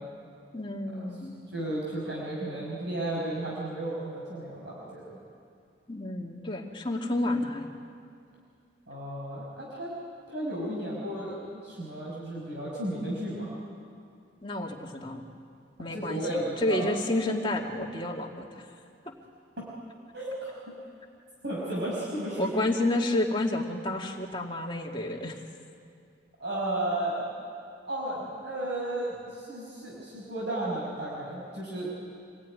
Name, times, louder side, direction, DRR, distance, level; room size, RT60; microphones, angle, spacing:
voice 1, 0.5-1.4 5.9-7.7 14.4-15.2 15.8-18.7 22.4-25.4, left 1 dB, 25° left, 0 dB, 2.4 m, -30 dB
voice 2, 1.5-5.2 8.9-9.9 10.3-13.5 15.9-16.9 19.6-19.7 20.1-20.5 21.4-22.5 26.4-27.2 27.9-32.1, right 1 dB, 70° right, -4 dB, 5.5 m, -33 dB
27.5 x 20.0 x 9.9 m, 2.3 s
head